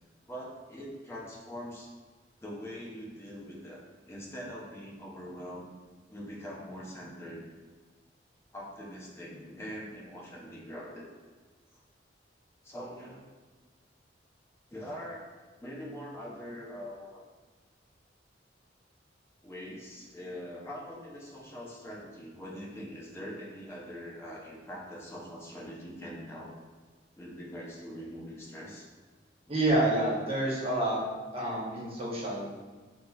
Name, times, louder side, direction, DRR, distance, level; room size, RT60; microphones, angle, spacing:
voice 1, 0.3-1.9 2.4-5.7 6.1-7.5 8.5-11.1 12.6-13.2 14.7-15.2 15.6-17.2 19.4-26.5 27.2-28.9 29.5-29.6, equal, 15° left, -4 dB, 0.6 m, -43 dB
voice 2, 29.5-31.0 31.3-32.5, right 1 dB, 35° right, -5 dB, 0.8 m, -28 dB
5.3 x 2.0 x 2.3 m, 1.4 s
head